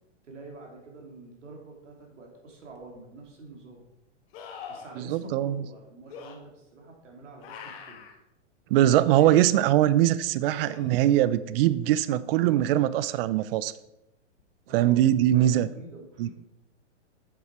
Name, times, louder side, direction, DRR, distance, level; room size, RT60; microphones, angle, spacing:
voice 1, 0.2-3.8 4.7-8.1 14.7-16.3, right 2 dB, 85° right, 1 dB, 2.6 m, -46 dB
sound 1, 2.7-2.8 4.3-5.0 6.1-6.4 7.4-8.2 9.1-9.4 10.6-11.2 14.4-14.5, left 6 dB, 55° left, 1.5 m, -43 dB
voice 2, 5.0-5.6 8.7-13.7 14.7-15.7 16.2-16.3, right 13 dB, 55° right, 16 dB, 0.5 m, -22 dB
7.6 x 6.5 x 4.5 m, 0.90 s
hypercardioid pair, 120°, 36 cm